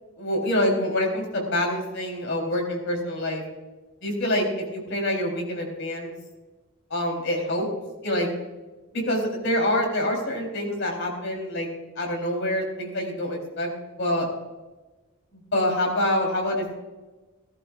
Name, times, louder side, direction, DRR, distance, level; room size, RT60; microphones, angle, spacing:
voice 1, 0.2-3.4 4.0-4.5 4.7-6.1 6.9-7.7 8.0-8.3 8.9-11.7 12.0-13.7 14.0-14.2 15.5-16.7, left 1 dB, 60° left, 1 dB, 4.0 m, -26 dB
16.5 x 14.5 x 2.6 m, 1.2 s
head